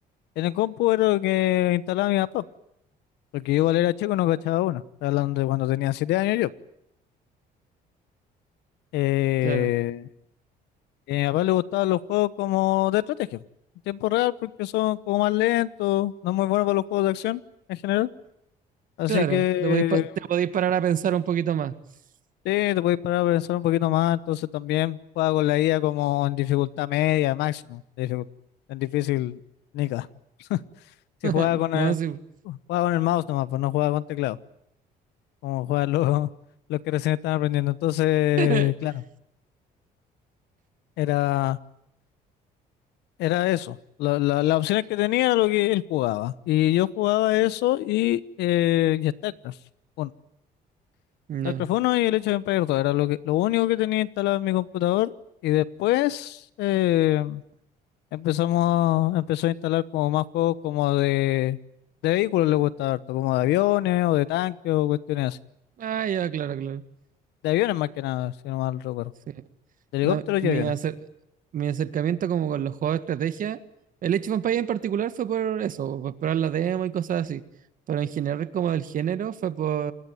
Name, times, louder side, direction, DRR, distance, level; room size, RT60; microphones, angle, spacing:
voice 1, 0.4-2.4 3.3-6.5 8.9-10.1 11.1-13.4 13.9-17.4 17.7-18.1 19.0-20.1 22.4-28.3 28.7-29.4 29.7-30.1 30.5-30.6 31.2-32.0 32.5-34.4 35.4-36.3 36.7-38.9 41.0-41.6 43.2-49.5 50.0-50.1 51.4-55.1 55.4-57.4 58.1-61.6 62.0-65.4 67.4-69.1 69.9-70.7, left 15 dB, 85° left, 18 dB, 1.1 m, -24 dB
voice 2, 19.1-21.7 31.2-32.2 38.4-38.7 51.3-51.7 65.8-66.8 70.0-71.0 71.5-73.6 74.0-77.4 77.9-79.9, right 9 dB, 55° right, 12 dB, 1.8 m, -27 dB
29.0 x 21.0 x 9.4 m, 0.79 s
cardioid pair, 110°, 17 cm